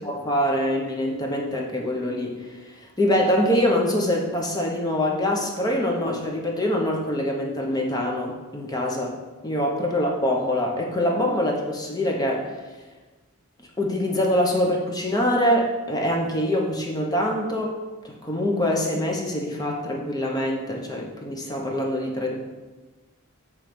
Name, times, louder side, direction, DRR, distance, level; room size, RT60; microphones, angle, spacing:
voice 1, 0.0-9.2 9.4-12.6 13.8-17.8 18.0-22.4, left 1 dB, 20° left, 0 dB, 0.7 m, -24 dB
7.4 x 3.2 x 5.0 m, 1.2 s
head